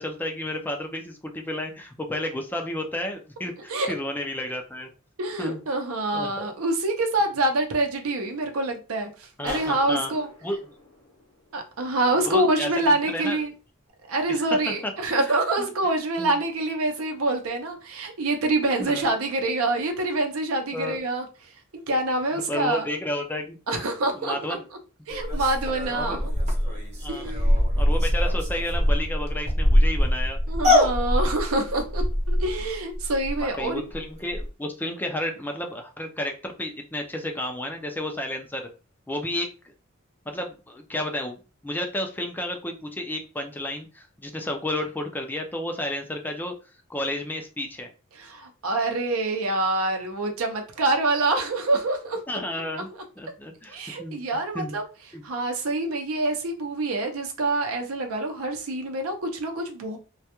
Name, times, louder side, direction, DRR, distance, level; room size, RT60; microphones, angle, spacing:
voice 1, 0.0-4.9 5.4-5.6 6.1-6.5 9.4-10.1 10.4-10.6 12.2-13.4 14.3-14.4 15.6-15.7 16.2-16.4 18.8-19.1 20.7-21.0 22.5-23.6 24.2-24.6 25.9-26.3 26.6-27.3 27.8-30.4 33.4-38.7 39.1-39.5 40.3-46.5 46.9-47.9 52.3-52.9 53.2-54.7 55.1-55.2, left 1 dB, 10° left, 0.3 m, -32 dB
voice 2, 5.2-10.3 11.5-13.5 14.1-21.3 21.7-22.8 23.7-24.6 25.1-26.2 27.1-27.5 30.5-33.8 48.1-52.2 53.7-54.8 55.2-60.0, right 2 dB, 75° right, 0.6 m, -26 dB
sound 1, 9.4-12.0, left 2 dB, 90° left, 0.6 m, -43 dB
sound 2, 25.1-33.6 33.9-34.0 34.3-34.5, left 1 dB, 30° right, 0.7 m, -23 dB
2.2 x 2.1 x 2.8 m
head